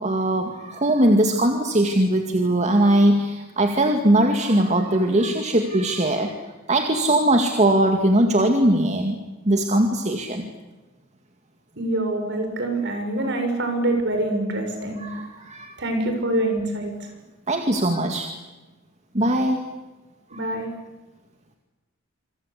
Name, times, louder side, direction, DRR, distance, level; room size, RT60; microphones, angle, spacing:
voice 1, 0.0-6.3 6.7-10.5 15.0-15.8 17.5-18.3 19.1-19.7 20.3-20.6, right 1 dB, 35° right, 4 dB, 2.3 m, -20 dB
voice 2, 11.8-15.0 15.8-16.9 20.3-20.7, right 1 dB, 55° right, 5 dB, 6.9 m, -25 dB
27.5 x 25.0 x 8.5 m, 1.1 s
head